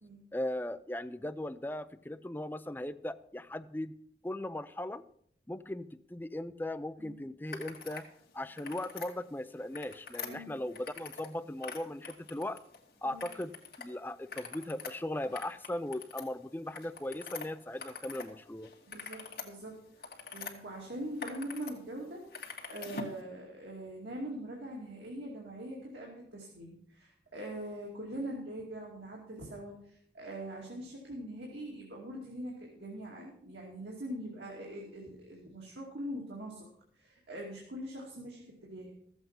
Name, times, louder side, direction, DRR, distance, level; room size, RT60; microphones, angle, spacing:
voice 1, 0.3-4.0 4.2-5.0 5.5-8.0 8.3-12.6 13.0-18.7, left 1 dB, 10° left, 10 dB, 0.4 m, -38 dB
sound 1, 7.5-8.1 8.4-9.1 9.6-11.3 11.6-12.8 13.2-13.9 14.2-18.3 18.6-20.5 21.0-21.7 22.0-23.2, left 5 dB, 60° left, 1.7 m, -44 dB
voice 2, 10.3-10.6 13.0-13.2 18.9-22.2 22.7-36.7 37.0-38.9, right 1 dB, 90° right, -2 dB, 2.5 m, -43 dB
13.5 x 8.0 x 5.7 m, 0.66 s
head